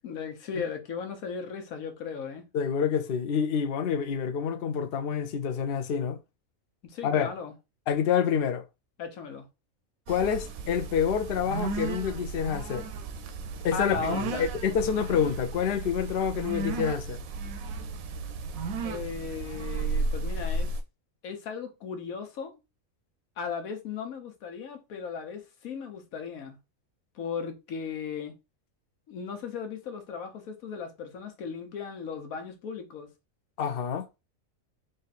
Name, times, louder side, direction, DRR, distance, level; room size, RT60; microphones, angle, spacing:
voice 1, 0.0-2.4 6.8-7.5 9.0-9.5 13.7-14.5 18.8-20.7 21.2-22.6 23.4-26.6 27.1-28.3 29.1-33.1, left 6 dB, 85° left, 1.4 m, -36 dB
voice 2, 2.5-6.2 7.0-7.3 7.9-8.6 10.1-12.9 13.6-14.2 14.6-17.2 33.6-34.0, left 7 dB, 55° left, 0.7 m, -27 dB
sound 1, 10.1-20.8, right 3 dB, 80° right, 1.0 m, -34 dB
3.8 x 2.6 x 4.1 m
omnidirectional pair, 1.5 m